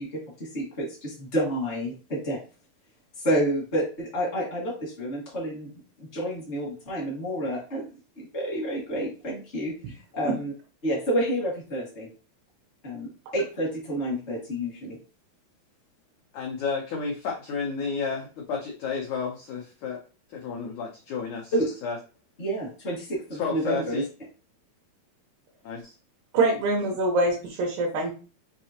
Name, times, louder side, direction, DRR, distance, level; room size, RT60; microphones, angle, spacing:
voice 1, 0.0-2.4 3.2-5.7 6.0-7.9 8.2-10.5 10.8-12.1 12.8-15.0 21.5-21.7 22.4-24.0, right 1 dB, 55° left, -4 dB, 0.7 m, -29 dB
voice 2, 16.3-20.0 20.3-21.5 21.8-22.0 23.3-24.1 25.6-25.9, left 5 dB, 90° left, -1 dB, 1.6 m, -31 dB
voice 3, 26.3-28.1, right 2 dB, 90° right, -2 dB, 3.0 m, -24 dB
6.6 x 2.8 x 2.9 m, 0.35 s
omnidirectional pair, 4.5 m